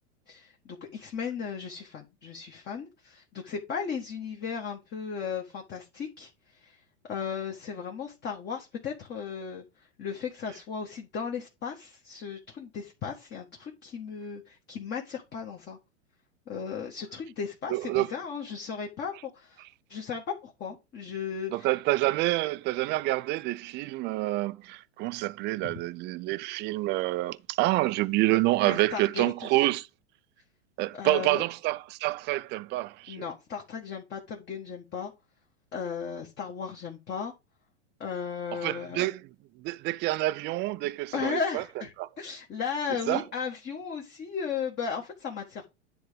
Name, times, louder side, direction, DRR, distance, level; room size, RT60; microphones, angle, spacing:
voice 1, 0.3-15.8 16.5-19.6 19.9-21.7 25.6-25.7 28.6-29.5 30.9-31.4 33.1-35.1 35.7-37.3 38.0-39.1 41.1-45.7, left 6 dB, 30° left, 1.6 m, -36 dB
voice 2, 17.7-18.1 21.5-29.9 30.8-33.2 38.5-39.2 39.6-41.6 42.0-42.1 43.1-43.2, right 18 dB, 30° right, 0.5 m, -27 dB
10.0 x 3.5 x 5.1 m
hypercardioid pair, 120°, 35 cm